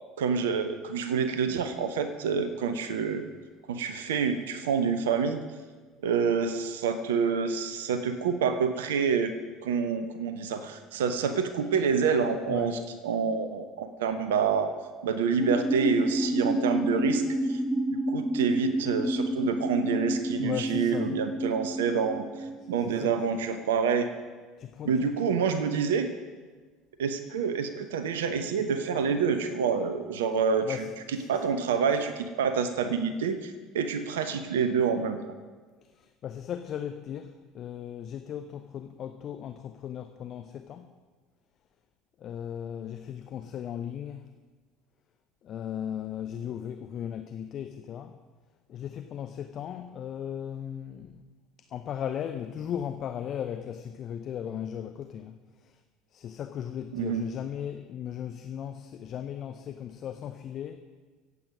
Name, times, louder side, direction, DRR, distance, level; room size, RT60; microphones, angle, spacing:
voice 1, 0.2-3.3 3.7-5.4 6.0-9.3 9.6-14.7 15.0-17.6 17.9-22.2 22.7-24.1 24.9-26.1 27.0-30.8 31.3-35.3 56.9-57.2, right 6 dB, 70° right, 10 dB, 0.9 m, -27 dB
voice 2, 12.5-12.8 20.4-21.2 22.8-23.2 24.6-25.4 30.6-31.4 35.9-40.9 42.2-44.3 45.4-48.2 48.7-51.3 51.7-55.8 56.1-60.8, left 9 dB, 45° left, 8 dB, 0.7 m, -37 dB
sound 1, 15.4-22.8, right 1 dB, 5° right, 1.2 m, -29 dB
24.5 x 8.5 x 5.2 m, 1.4 s
figure-of-eight pair, 65°, 0 cm